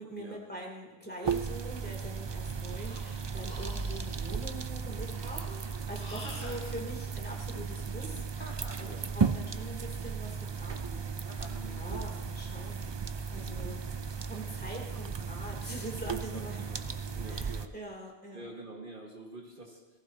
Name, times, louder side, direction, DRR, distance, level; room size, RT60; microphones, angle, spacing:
voice 1, 0.0-11.0 11.6-12.9 13.3-13.8 14.2-16.6 17.3-18.5, right 1 dB, 10° left, -2 dB, 3.1 m, -43 dB
sound 1, 1.2-17.7, right 6 dB, 40° right, 0.4 m, -35 dB
Breathing, 2.5-6.8, left 2 dB, 85° left, 2.1 m, -51 dB
Chuckle chortle, 6.2-6.7 8.4-8.9 11.2-11.7, equal, 60° left, 3.4 m, -47 dB
voice 2, 8.8-9.2 11.5-11.9 13.4-13.7 16.3-16.4 16.7-16.8 17.1-17.7 18.3-20.0, right 2 dB, 55° right, -1 dB, 1.9 m, -47 dB
18.5 x 15.0 x 2.8 m, 1.2 s
omnidirectional pair, 1.1 m